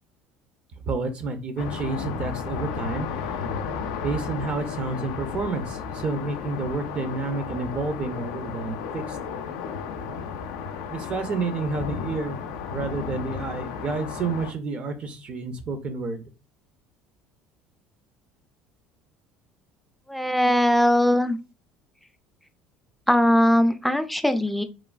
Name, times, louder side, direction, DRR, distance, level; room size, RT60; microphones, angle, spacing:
voice 1, 0.9-3.1 4.0-9.2 10.9-12.4 12.7-16.2, right 3 dB, 45° right, 8 dB, 0.5 m, -30 dB
sound 1, 1.6-14.5, left 6 dB, 80° left, 0.3 m, -33 dB
voice 2, 20.1-21.4 23.1-24.6, left 1 dB, ahead, 9 dB, 0.4 m, -20 dB
3.0 x 2.1 x 2.4 m, 0.30 s
hypercardioid pair, 80°, 3 cm